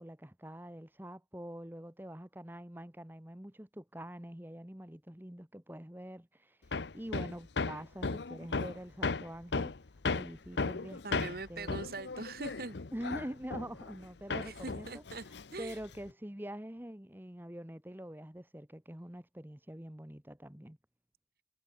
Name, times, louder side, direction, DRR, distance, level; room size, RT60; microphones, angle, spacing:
voice 1, 0.0-6.6 6.9-9.7 10.1-11.8 12.9-15.0 15.6-20.8, equal, 10° right, 1.2 m, -45 dB
Hammer, 6.7-14.0 14.3-16.1, left 4 dB, 75° left, 0.8 m, -36 dB
voice 2, 11.0-12.8 14.4-15.2 15.5-15.8, right 3 dB, 55° right, 1.2 m, -42 dB
head